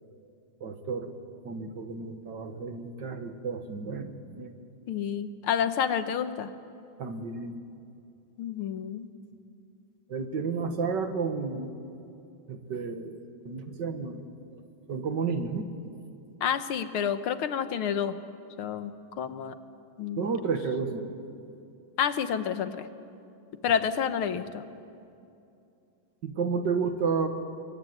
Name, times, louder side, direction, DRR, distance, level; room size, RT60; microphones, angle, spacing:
voice 1, 0.6-1.1 1.4-4.6 7.0-7.6 10.1-11.7 12.5-13.2 13.5-14.3 14.9-15.7 20.2-21.0 26.2-27.3, right 5 dB, 55° right, 7 dB, 2.1 m, -31 dB
voice 2, 4.9-6.5 8.4-9.1 16.4-18.2 18.6-18.9 19.2-19.6 20.0-20.3 22.0-22.9 23.6-24.7, left 8 dB, 80° left, 11 dB, 2.0 m, -29 dB
26.5 x 23.5 x 9.4 m, 2.6 s
omnidirectional pair, 2.3 m